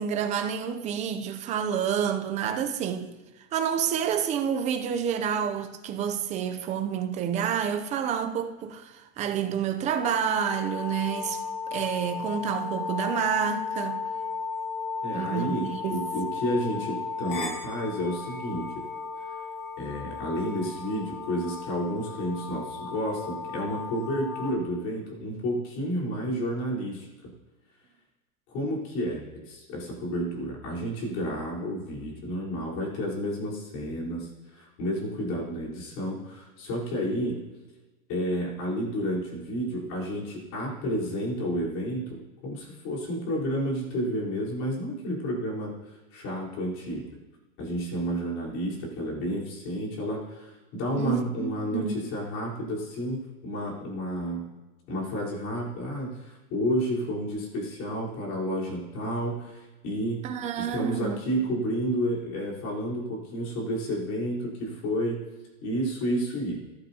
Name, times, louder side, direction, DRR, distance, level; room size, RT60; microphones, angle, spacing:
voice 1, 0.0-3.1 3.5-11.4 11.7-14.0 15.1-16.1 51.0-52.0 60.2-61.3, right 8 dB, 15° right, 0.5 m, -29 dB
sound 1, 10.0-24.5, left 4 dB, 60° left, 2.5 m, -35 dB
voice 2, 15.0-18.8 19.3-19.4 19.8-27.3 28.5-37.4 38.1-47.1 47.6-54.5 54.9-60.3 60.6-65.2 65.6-66.6, equal, 40° left, 4.1 m, -31 dB
13.5 x 11.5 x 2.9 m
supercardioid pair, 145°, 43 cm